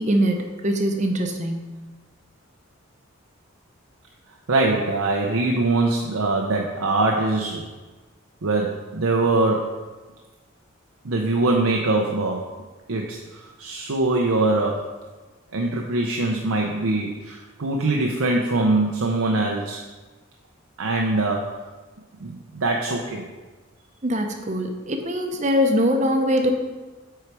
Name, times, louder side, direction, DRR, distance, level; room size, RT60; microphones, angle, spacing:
voice 1, 0.0-1.7 24.0-26.5, equal, 35° right, 4 dB, 0.7 m, -22 dB
voice 2, 4.5-7.7 8.4-9.8 11.0-12.4 12.9-14.9 15.5-19.8 20.8-21.5 22.2-23.3, right 2 dB, 85° right, 0 dB, 0.7 m, -23 dB
7.9 x 4.7 x 4.7 m, 1.3 s
head